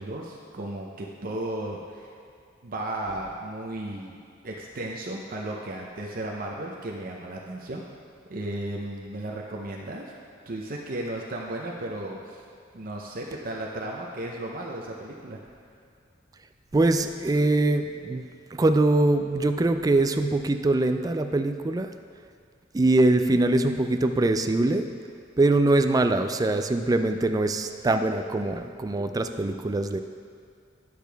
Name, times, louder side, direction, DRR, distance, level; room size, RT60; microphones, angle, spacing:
voice 1, 0.0-2.1 2.6-4.2 4.4-7.8 8.3-10.1 10.5-12.4 12.7-15.4, right 1 dB, 50° right, -1 dB, 0.7 m, -34 dB
voice 2, 16.7-18.3 18.5-21.9 22.7-24.9 25.4-30.0, right 2 dB, 20° right, 8 dB, 0.3 m, -23 dB
10.0 x 6.6 x 3.4 m, 2.3 s
head